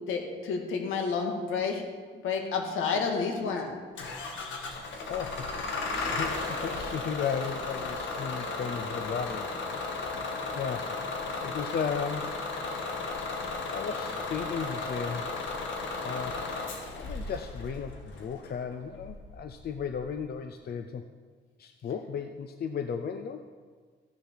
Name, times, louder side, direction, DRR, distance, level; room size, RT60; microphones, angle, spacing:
voice 1, 0.1-1.8 2.2-3.8, left 5 dB, 85° left, 3 dB, 2.0 m, -30 dB
Bus / Engine starting, 4.0-20.2, left 3 dB, 70° left, 2.0 m, -35 dB
voice 2, 5.1-9.8 10.5-11.0 11.4-12.4 13.7-15.2 16.0-16.4 16.9-21.0 21.6-23.5, left 7 dB, 55° left, 8 dB, 0.7 m, -35 dB
14.5 x 6.7 x 6.4 m, 1.5 s
cardioid pair, 90°, 20 cm